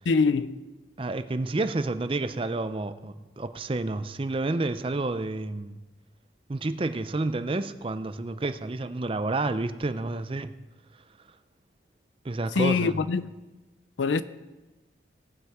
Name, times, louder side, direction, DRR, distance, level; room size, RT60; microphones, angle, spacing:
voice 1, 0.1-0.6 12.5-13.3 14.0-14.2, left 4 dB, 90° left, 0.5 m, -24 dB
voice 2, 1.0-5.8 6.5-10.5 12.2-13.0, right 2 dB, 30° right, 0.5 m, -30 dB
17.5 x 7.9 x 4.8 m
head